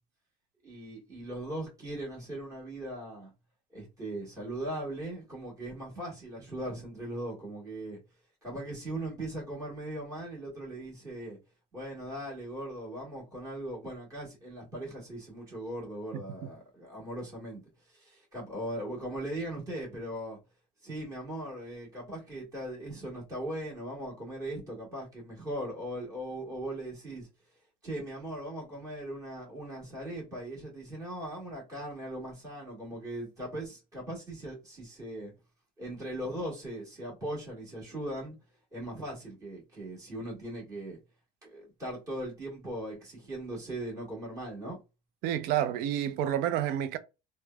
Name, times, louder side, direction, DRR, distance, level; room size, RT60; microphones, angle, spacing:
voice 1, 0.6-3.3 3.7-8.0 8.4-11.4 11.7-20.4 20.8-27.3 27.8-35.3 35.8-38.3 38.7-41.0 41.4-44.8, right 1 dB, 15° right, 1.4 m, -39 dB
voice 2, 45.2-47.0, right 11 dB, 50° right, 0.4 m, -29 dB
3.2 x 2.1 x 2.2 m
cardioid pair, 160°, 20 cm